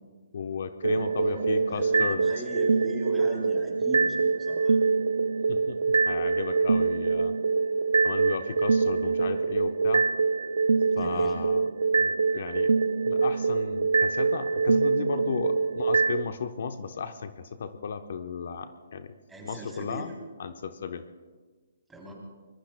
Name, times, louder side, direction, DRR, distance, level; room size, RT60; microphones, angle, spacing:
voice 1, 0.3-2.2 5.5-7.3 8.0-10.0 11.0-11.7 12.0-12.7 13.0-19.1 19.4-20.1 20.4-21.0, left 6 dB, 60° left, 8 dB, 0.8 m, -35 dB
sound 1, 0.8-16.2, right 4 dB, 85° right, 0.3 m, -24 dB
voice 2, 0.9-4.8 10.9-11.3 19.3-20.1 21.9-22.1, right 1 dB, 5° right, -2 dB, 3.3 m, -39 dB
24.5 x 21.5 x 2.2 m, 1.4 s
hypercardioid pair, 160°, 0 cm